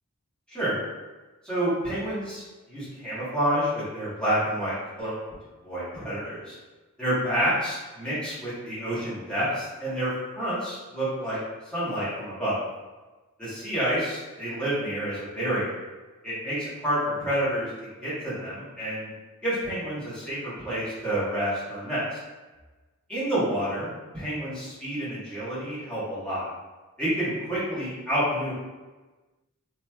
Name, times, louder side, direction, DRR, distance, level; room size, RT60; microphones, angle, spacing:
voice 1, 1.4-5.2 5.6-6.5 7.0-11.4 11.7-12.6 13.4-15.8 16.2-17.7 18.0-19.1 19.4-22.0 23.1-23.9 24.1-26.5 27.0-28.5, right 1 dB, 5° left, -13 dB, 1.5 m, -29 dB
3.0 x 2.9 x 2.4 m, 1.2 s
head